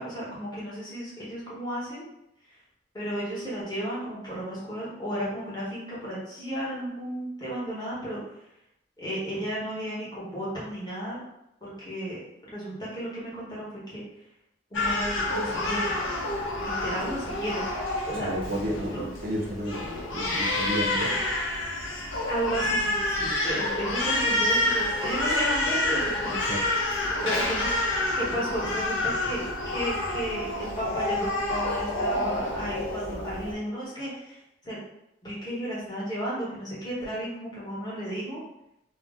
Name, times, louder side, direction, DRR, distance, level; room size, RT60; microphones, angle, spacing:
voice 1, 0.0-2.0 2.5-2.6 2.9-8.3 9.0-11.2 11.6-14.0 14.7-16.0 16.6-17.6 18.1-18.3 18.9-19.0 22.3-26.7 27.2-34.8 35.2-38.4, equal, 20° left, -8 dB, 1.0 m, -33 dB
Crying sobbing, 14.7-33.5, left 1 dB, 85° left, 0.7 m, -28 dB
voice 2, 18.2-21.2 26.3-26.7, equal, 45° right, -1 dB, 0.4 m, -32 dB
2.6 x 2.0 x 3.4 m, 0.83 s
head